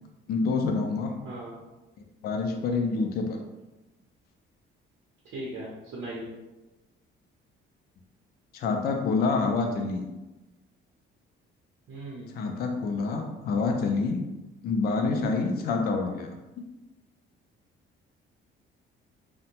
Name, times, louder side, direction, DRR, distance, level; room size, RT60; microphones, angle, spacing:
voice 1, 0.3-1.1 2.2-3.3 8.5-10.0 12.3-14.2 14.6-16.3, left 4 dB, 50° left, 3 dB, 0.4 m, -27 dB
voice 2, 1.2-1.6 5.3-6.3 11.9-12.3, right 1 dB, 65° right, -5 dB, 0.6 m, -38 dB
2.6 x 2.1 x 2.8 m, 1.0 s
cardioid pair, 165°, 21 cm